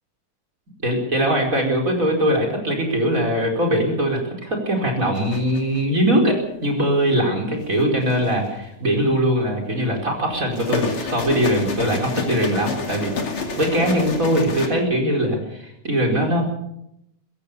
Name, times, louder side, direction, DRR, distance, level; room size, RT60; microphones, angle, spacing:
voice 1, 0.8-16.4, equal, 25° right, 1 dB, 5.0 m, -21 dB
sound 1, 5.1-5.8 7.7-8.5 10.3-14.7, left 4 dB, 45° left, 3.2 m, -28 dB
23.5 x 16.0 x 7.0 m, 0.78 s
omnidirectional pair, 3.4 m